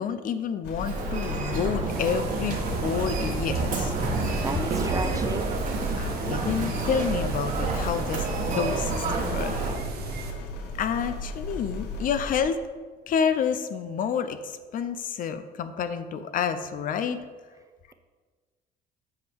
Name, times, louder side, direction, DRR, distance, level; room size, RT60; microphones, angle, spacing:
voice 1, 0.0-4.0 6.0-9.6 10.8-12.6 13.1-17.2, left 7 dB, 55° left, 11 dB, 0.6 m, -29 dB
sound 1, 0.6-12.4, left 1 dB, 75° left, 1.0 m, -36 dB
Human voice, 0.8-9.7, right 3 dB, 50° right, 1.6 m, -29 dB
sound 2, 1.9-10.3, right 5 dB, 70° right, 1.1 m, -39 dB
voice 2, 4.4-5.4, right 3 dB, 20° right, 8 dB, 0.6 m, -33 dB
8.1 x 5.4 x 4.6 m, 1.4 s
cardioid pair, 110°, 17 cm